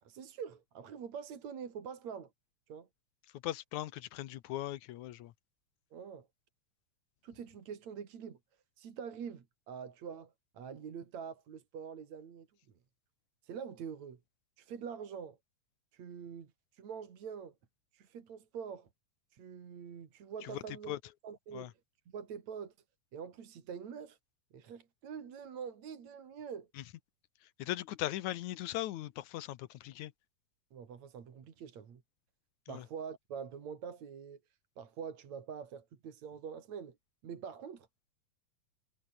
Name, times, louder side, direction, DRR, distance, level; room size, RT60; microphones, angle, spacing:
voice 1, 0.0-2.3 2.7-2.9 5.9-6.3 7.2-8.4 8.8-12.5 13.4-14.2 14.6-15.4 15.9-17.6 17.9-18.9 19.3-21.0 21.2-21.7 22.1-22.7 23.1-24.2 24.5-26.7 30.7-32.0 32.7-34.4 34.8-37.0 37.2-37.9, right 7 dB, 70° right, 3.9 m, -45 dB
voice 2, 3.4-5.3 20.4-21.0 21.5-21.7 26.8-26.9 27.6-30.1 32.7-32.9, left 14 dB, 85° left, 2.4 m, -39 dB
omnidirectional pair, 3.3 m